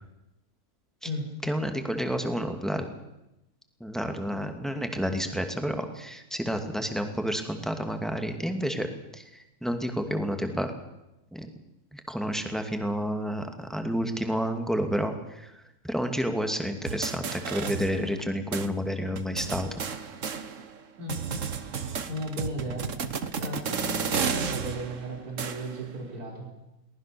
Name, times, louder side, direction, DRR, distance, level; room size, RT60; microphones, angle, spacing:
voice 1, 1.5-2.9 3.8-8.9 9.1-10.7 11.3-11.5 11.9-15.5 15.8-19.8, equal, ahead, 6 dB, 2.3 m, -30 dB
sound 1, 16.8-18.3 18.5-18.7 19.1-20.8 21.1-25.9, right 6 dB, 55° right, 1.6 m, -33 dB
voice 2, 21.6-22.9 23.3-26.5, equal, 85° right, 0 dB, 4.8 m, -36 dB
22.5 x 19.0 x 6.9 m, 0.92 s
omnidirectional pair, 1.6 m